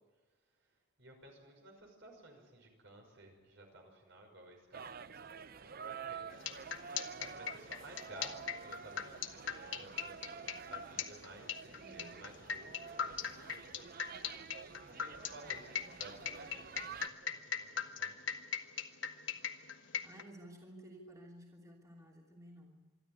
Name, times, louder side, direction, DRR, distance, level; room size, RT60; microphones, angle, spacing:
voice 1, 1.0-5.7 6.0-6.3 7.2-13.8 14.9-18.2, right 2 dB, 65° right, 2 dB, 5.9 m, -55 dB
sound 1, 4.7-17.1, right 6 dB, 50° right, 0.6 m, -49 dB
sound 2, 6.3-20.2, left 7 dB, 65° left, 1.3 m, -39 dB
voice 2, 11.8-12.2 20.0-23.0, right 1 dB, 15° right, -2 dB, 3.0 m, -54 dB
26.0 x 12.5 x 9.7 m, 1.3 s
head